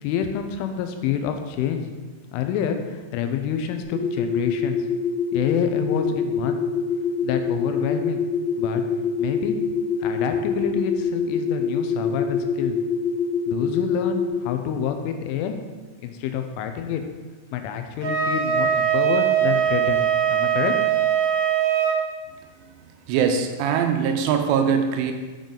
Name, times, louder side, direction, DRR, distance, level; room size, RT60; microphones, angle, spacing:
voice 1, 0.0-1.9 2.3-4.8 5.3-6.6 7.2-8.2 8.6-8.8 9.2-9.6 10.0-12.8 13.5-15.6 16.0-17.0 17.5-20.0 20.3-20.7, left 8 dB, 85° left, 6 dB, 3.0 m, -27 dB
sound 1, 3.8-14.3, left 5 dB, 50° left, 2.1 m, -25 dB
Wind instrument woodwind instrument, 18.0-22.0, right 9 dB, 60° right, 1.2 m, -21 dB
voice 2, 22.8-25.1, right 7 dB, 85° right, 5 dB, 3.0 m, -22 dB
8.9 x 5.4 x 3.8 m, 1.4 s
omnidirectional pair, 5.7 m